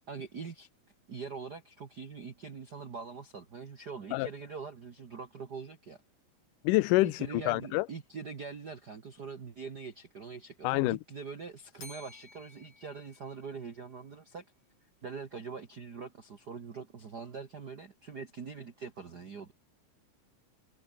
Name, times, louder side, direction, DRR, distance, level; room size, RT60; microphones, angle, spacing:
voice 1, 0.1-0.7 1.1-6.0 7.0-14.4 15.0-19.5, right 5 dB, 40° right, 1.6 m, -43 dB
voice 2, 6.6-7.9 10.6-11.0, left 20 dB, 80° left, 2.2 m, -27 dB
Bell, 11.8-14.0, left 4 dB, 60° left, 8.2 m, -53 dB
omnidirectional pair, 3.8 m